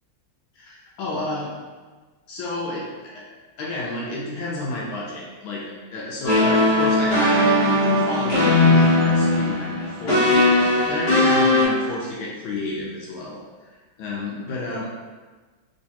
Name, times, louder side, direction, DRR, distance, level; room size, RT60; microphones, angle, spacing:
voice 1, 0.6-1.6 2.3-3.3 3.6-14.9, left 2 dB, 75° left, -3 dB, 1.3 m, -31 dB
sound 1, 6.2-11.6, left 2 dB, 55° left, 1.5 m, -18 dB
3.3 x 3.1 x 2.8 m, 1.3 s
omnidirectional pair, 2.4 m